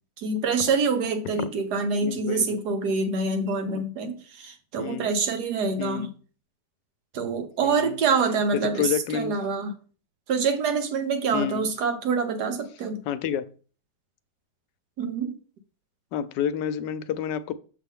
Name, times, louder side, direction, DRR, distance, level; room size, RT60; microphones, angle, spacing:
voice 1, 0.2-6.1 7.1-9.7 10.3-13.0 15.0-15.3, right 4 dB, 70° right, 1.5 m, -26 dB
voice 2, 2.0-2.6 3.7-3.9 4.8-5.1 5.8-6.1 7.6-8.0 8.8-9.3 11.3-11.7 13.1-13.5 16.1-17.5, left 9 dB, 90° left, 1.2 m, -29 dB
6.8 x 5.5 x 3.6 m
omnidirectional pair, 1.8 m